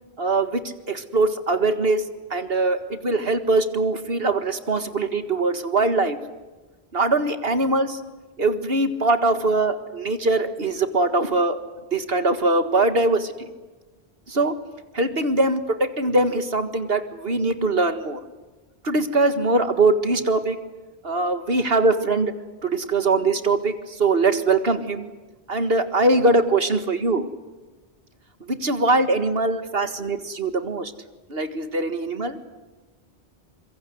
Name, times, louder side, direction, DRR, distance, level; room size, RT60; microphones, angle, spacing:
voice 1, 0.2-2.0 2.3-6.2 6.9-8.0 8.4-11.6 11.9-13.5 14.3-14.6 14.9-18.2 18.8-20.6 21.0-22.3 22.6-25.1 25.5-27.3 28.4-30.9 31.3-32.4, right 2 dB, 70° right, 9 dB, 2.0 m, -22 dB
26.5 x 24.0 x 8.1 m, 1.2 s
omnidirectional pair, 1.0 m